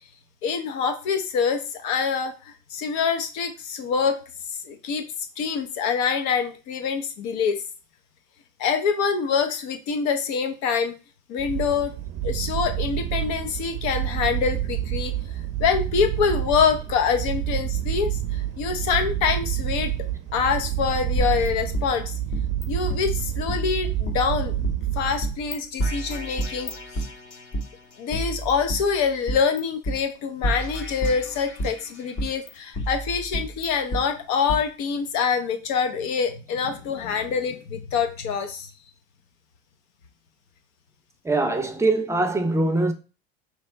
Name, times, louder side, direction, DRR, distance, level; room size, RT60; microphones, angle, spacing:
voice 1, 0.4-4.2 4.6-5.0 5.4-7.6 8.6-10.9 11.3-11.9 12.2-15.1 15.6-19.9 20.3-22.1 22.7-24.6 24.9-26.7 28.0-38.7, left 6 dB, 65° left, 0.9 m, -25 dB
sound 1, 11.4-25.6, right 12 dB, 55° right, 0.6 m, -28 dB
sound 2, 21.2-22.6 22.9-23.0 23.5-24.7 25.2-25.5 25.8-27.6 28.1-29.6 29.8-30.0 30.4-31.8 32.2-34.0 34.5-34.6, right 1 dB, 40° left, 1.1 m, -29 dB
voice 2, 41.2-42.9, right 2 dB, 10° right, 0.6 m, -22 dB
3.3 x 2.9 x 4.4 m
supercardioid pair, 110°, 29 cm